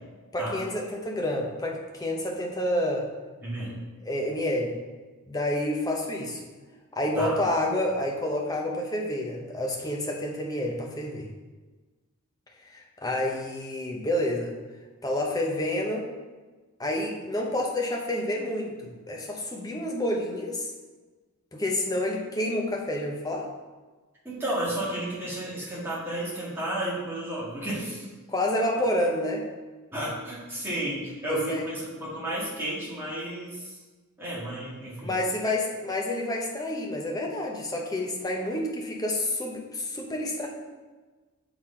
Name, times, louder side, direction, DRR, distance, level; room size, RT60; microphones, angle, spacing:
voice 1, 0.3-3.1 4.1-4.7 5.3-6.5 6.9-11.3 12.7-14.6 15.0-16.1 16.8-20.7 21.5-23.5 28.3-29.5 31.3-31.6 35.0-40.5, left 1 dB, 15° left, 0 dB, 0.7 m, -29 dB
voice 2, 3.4-3.8 7.2-7.3 24.2-28.1 29.9-33.8 34.2-35.1, right 1 dB, 10° right, -8 dB, 1.7 m, -32 dB
6.3 x 4.0 x 4.3 m, 1.3 s
head